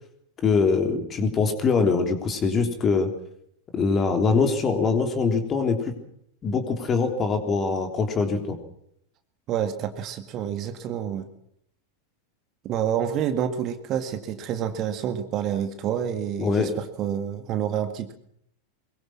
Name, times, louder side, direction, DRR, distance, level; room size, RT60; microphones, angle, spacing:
voice 1, 0.4-3.1 3.7-6.0 6.4-8.6 16.4-16.7, left 4 dB, 25° left, 6 dB, 3.5 m, -23 dB
voice 2, 9.5-11.3 12.6-18.1, right 9 dB, 35° right, 8 dB, 1.9 m, -28 dB
23.5 x 22.5 x 6.1 m, 0.70 s
figure-of-eight pair, 90°, 0 cm